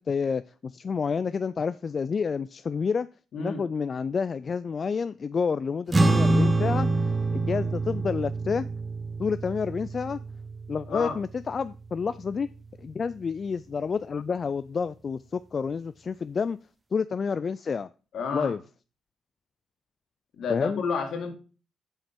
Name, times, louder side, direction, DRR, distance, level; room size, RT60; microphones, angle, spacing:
voice 1, 0.1-3.1 3.4-6.9 7.3-8.7 9.2-10.2 10.7-12.5 12.8-16.6 16.9-17.9 18.3-18.6 20.5-20.8, left 5 dB, 40° left, 0.3 m, -29 dB
voice 2, 3.3-3.6 10.9-11.2 18.1-18.6 20.4-21.3, left 5 dB, 65° left, 2.1 m, -30 dB
sound 1, 5.9-12.6, right 2 dB, 20° right, 0.9 m, -26 dB
7.2 x 5.6 x 5.2 m
cardioid pair, 90°, 0 cm